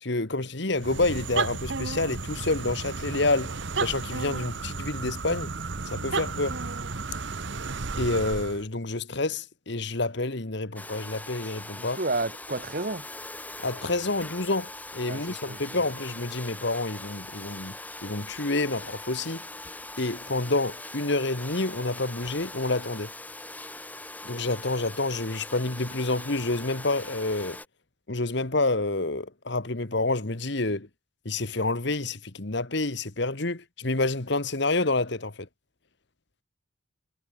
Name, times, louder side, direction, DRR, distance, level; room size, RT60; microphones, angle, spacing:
voice 1, 0.0-5.5 5.9-6.6 8.0-12.0 13.6-17.7 18.0-19.4 20.0-23.1 24.2-27.6 28.1-30.9 31.2-35.5, left 2 dB, 55° left, 1.6 m, -28 dB
sound 1, 0.7-8.6, right 4 dB, 60° right, 1.1 m, -33 dB
Domestic sounds home sounds, 10.8-27.7, left 2 dB, 10° left, 1.6 m, -41 dB
voice 2, 11.8-13.1 15.1-15.6, right 2 dB, 45° right, 2.0 m, -31 dB
head